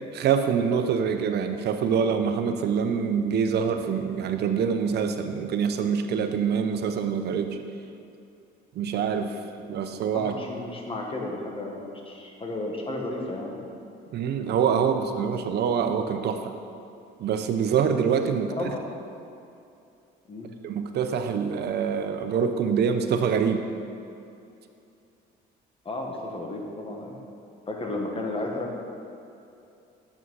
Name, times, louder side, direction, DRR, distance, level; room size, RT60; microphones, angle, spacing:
voice 1, 0.1-7.6 8.7-9.4 9.7-10.3 14.1-16.5 17.2-18.7 20.6-23.6, right 7 dB, 60° right, 7 dB, 0.8 m, -25 dB
voice 2, 10.1-13.6 18.5-19.0 20.3-20.5 25.8-27.2 27.7-28.7, left 2 dB, 30° left, 0 dB, 1.5 m, -33 dB
7.3 x 6.1 x 5.5 m, 2.6 s
supercardioid pair, 75°, 19 cm